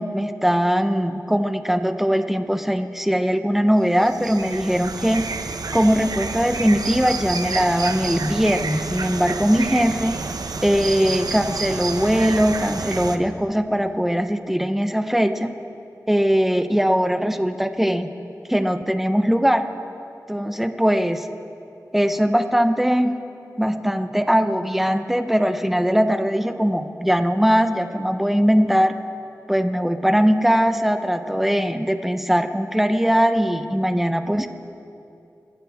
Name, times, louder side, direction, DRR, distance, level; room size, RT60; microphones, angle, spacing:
voice 1, 0.0-5.3 5.7-10.2 10.6-15.5 16.1-18.1 18.5-19.6 20.3-21.3 21.9-23.2 23.6-28.9 29.5-34.5, equal, 5° right, 8 dB, 0.9 m, -20 dB
sound 1, 3.8-13.2, right 4 dB, 85° right, 0.8 m, -29 dB
26.5 x 14.0 x 3.6 m, 2.7 s
wide cardioid pair, 60°, 6 cm